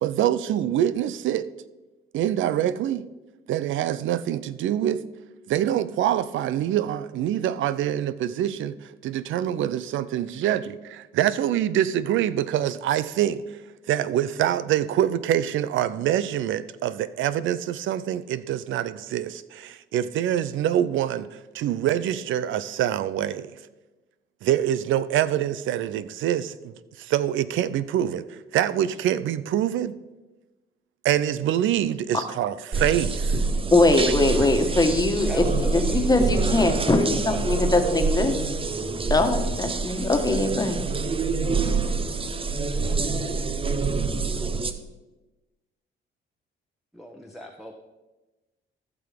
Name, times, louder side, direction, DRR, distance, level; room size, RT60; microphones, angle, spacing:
voice 1, 0.0-1.5 2.1-3.1 3.5-5.0 5.5-8.7 9.0-13.6 13.9-23.6 24.4-30.0 31.0-33.2, right 11 dB, 80° right, 0.6 m, -25 dB
sound 1, 32.7-44.7, right 4 dB, 25° right, 0.8 m, -26 dB
voice 2, 33.7-35.4 35.7-38.3 39.1-40.8, left 2 dB, 20° left, 1.5 m, -21 dB
voice 3, 34.3-36.1 37.3-38.4 46.9-47.7, equal, ahead, 1.1 m, -39 dB
14.5 x 6.1 x 5.2 m
cardioid pair, 90°, 20 cm